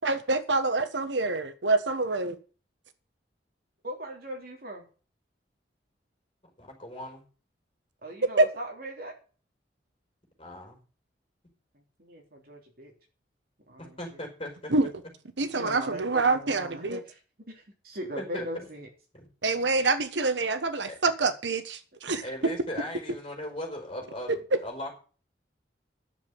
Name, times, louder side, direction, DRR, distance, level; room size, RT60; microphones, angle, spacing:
voice 1, 0.0-2.3 8.4-8.5 14.7-14.9 15.4-17.0 19.4-22.2 24.3-24.4, right 3 dB, 90° right, 11 dB, 1.2 m, -26 dB
voice 2, 3.8-4.9 8.0-9.1 12.0-12.9 13.7-14.0 15.5-17.2 17.5-18.9, right 1 dB, 55° right, 2 dB, 3.4 m, -39 dB
voice 3, 6.6-7.2 10.4-10.8 13.8-14.7 16.4-16.5 18.2-18.7 19.1-19.3 20.8-21.0 22.2-24.9, left 1 dB, 30° left, 1 dB, 4.8 m, -38 dB
10.5 x 7.2 x 8.5 m, 0.38 s
head